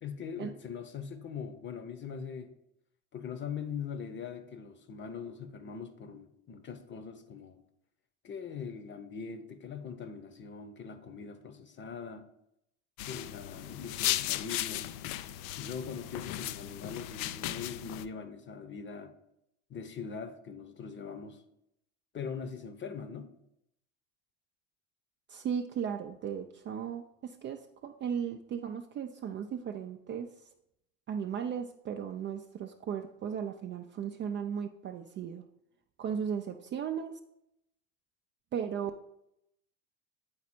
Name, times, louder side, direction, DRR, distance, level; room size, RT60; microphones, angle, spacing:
voice 1, 0.0-2.5 3.1-7.6 8.2-12.3 13.1-14.9 15.6-19.1 19.7-21.4 22.1-23.3, left 6 dB, 30° left, 0.9 m, -41 dB
sound 1, 13.0-18.0, left 14 dB, 50° left, 0.5 m, -36 dB
voice 2, 25.3-30.3 31.1-35.4 36.0-37.2 38.5-38.9, right 7 dB, 30° right, 0.5 m, -36 dB
8.6 x 4.0 x 4.4 m
hypercardioid pair, 85°, 40 cm